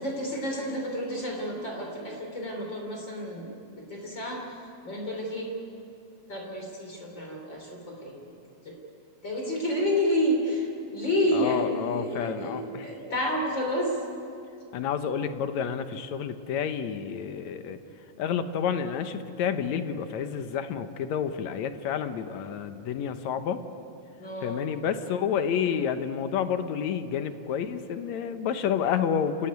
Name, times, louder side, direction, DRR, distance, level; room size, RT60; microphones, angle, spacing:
voice 1, 0.0-5.5 6.3-8.4 8.6-8.8 9.2-14.1 24.2-24.6, left 1 dB, 35° left, 0 dB, 3.9 m, -30 dB
voice 2, 11.3-12.9 14.7-17.8 18.2-23.6 24.4-29.5, left 8 dB, 65° left, 9 dB, 2.2 m, -29 dB
29.0 x 15.5 x 9.5 m, 2.7 s
omnidirectional pair, 3.7 m